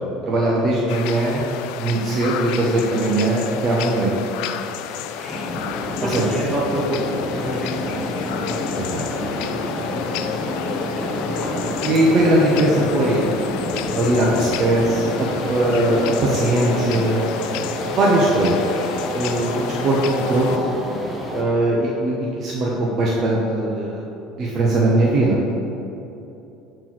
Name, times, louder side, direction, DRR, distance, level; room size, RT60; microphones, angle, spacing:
voice 1, 0.2-1.5 1.7-4.1 6.1-6.2 8.8-9.0 11.8-13.2 13.9-17.3 17.9-18.7 19.1-20.6 21.3-24.0 24.4-25.4, right 1 dB, 35° right, -4 dB, 1.0 m, -20 dB
sound 1, 0.9-20.6, left 9 dB, 70° left, 0.4 m, -32 dB
voice 2, 5.1-8.0 10.9-11.3 17.8-18.2, right 1 dB, 15° right, -5 dB, 1.7 m, -29 dB
sound 2, 5.3-21.4, left 1 dB, 10° left, 1.0 m, -28 dB
sound 3, 8.3-16.7, left 4 dB, 85° left, 0.8 m, -36 dB
7.6 x 4.5 x 6.0 m, 2.9 s
cardioid pair, 155°, 0 cm